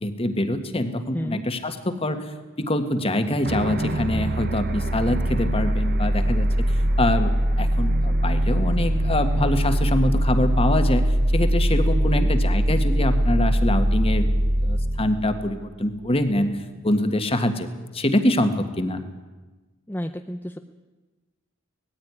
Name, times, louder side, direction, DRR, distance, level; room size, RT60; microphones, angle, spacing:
voice 1, 0.0-7.3 7.6-11.1 11.3-14.3 14.6-16.5 16.8-17.7 17.9-19.0, left 1 dB, 30° left, 8 dB, 1.7 m, -24 dB
sound 1, 3.4-16.2, equal, 50° right, 1.1 m, -22 dB
voice 2, 11.9-12.3 19.9-20.6, equal, 10° left, 6 dB, 0.6 m, -31 dB
19.5 x 14.5 x 9.6 m, 1.2 s
head